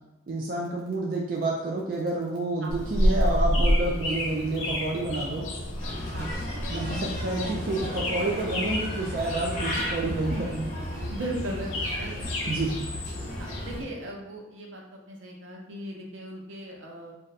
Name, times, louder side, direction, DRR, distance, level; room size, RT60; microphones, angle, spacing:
voice 1, 0.3-5.5 6.0-6.3 6.7-10.7 12.5-12.8, right 2 dB, 45° right, -2 dB, 0.3 m, -29 dB
sound 1, 2.7-13.8, equal, 90° left, 0.6 m, -30 dB
Bird, 5.8-13.8, left 1 dB, 40° left, 0.8 m, -35 dB
sound 2, 6.9-9.9, equal, 30° right, 1.1 m, -46 dB
voice 2, 11.1-12.3 13.4-17.1, right 1 dB, 75° right, 0 dB, 0.7 m, -38 dB
2.6 x 2.1 x 3.9 m, 0.93 s
head